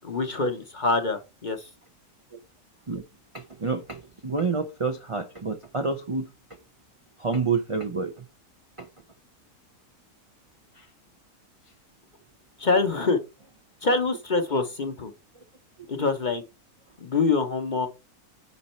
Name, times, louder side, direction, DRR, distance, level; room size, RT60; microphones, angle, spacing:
voice 1, 0.0-1.7 12.6-13.2 13.8-15.1 15.9-16.4 17.0-17.9, left 3 dB, 40° left, 0.8 m, -25 dB
voice 2, 3.3-6.3 7.2-8.1 8.8-8.9 10.8-10.9, right 4 dB, 45° right, 0.4 m, -28 dB
9.7 x 4.1 x 4.3 m
omnidirectional pair, 1.6 m